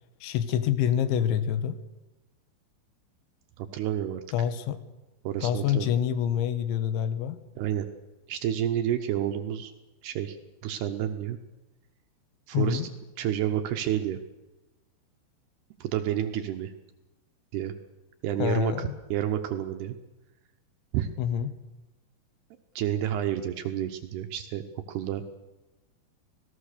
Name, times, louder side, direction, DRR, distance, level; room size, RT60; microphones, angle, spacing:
voice 1, 0.2-1.8 4.3-4.8 5.4-7.4 12.5-12.9 18.4-19.0 21.2-21.5, left 9 dB, 75° left, 12 dB, 3.3 m, -26 dB
voice 2, 3.6-4.2 5.2-5.9 7.6-7.9 8.3-9.7 10.0-10.4 10.6-11.4 12.5-12.8 13.2-14.2 15.8-16.7 17.5-17.7 18.2-20.0 20.9-21.1 22.8-24.6 24.9-25.2, right 11 dB, 80° right, 7 dB, 2.3 m, -29 dB
25.5 x 18.0 x 6.7 m, 1.1 s
omnidirectional pair, 5.8 m